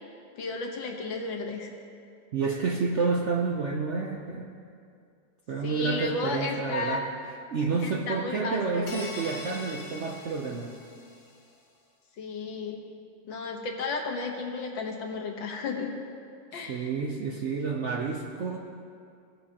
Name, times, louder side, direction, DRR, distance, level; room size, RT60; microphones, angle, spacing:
voice 1, 0.4-1.7 5.6-7.0 7.8-9.0 12.2-12.9 13.3-16.0 16.5-16.9, left 3 dB, 85° left, 2 dB, 1.9 m, -33 dB
voice 2, 2.3-4.5 5.5-7.1 7.5-10.7 16.5-18.6, right 4 dB, 65° right, 1 dB, 0.7 m, -29 dB
sound 1, 8.9-11.3, left 2 dB, 40° left, 1.4 m, -42 dB
18.0 x 9.6 x 2.9 m, 2.4 s
omnidirectional pair, 2.0 m